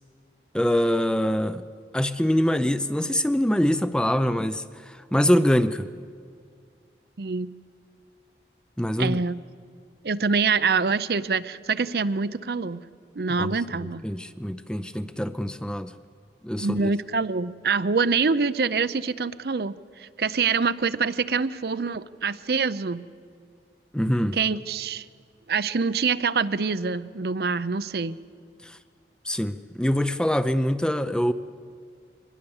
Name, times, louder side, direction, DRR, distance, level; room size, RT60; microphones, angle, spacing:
voice 1, 0.5-1.7 1.9-5.9 8.8-9.2 13.3-15.9 16.4-16.9 23.9-24.4 28.6-28.8 29.2-31.3, equal, 5° left, 12 dB, 0.5 m, -24 dB
voice 2, 7.2-7.5 9.0-9.4 10.0-12.8 13.2-14.0 16.6-23.1 24.3-25.0 25.5-28.2, right 5 dB, 60° right, 15 dB, 0.6 m, -25 dB
24.0 x 20.5 x 7.2 m, 2.1 s
head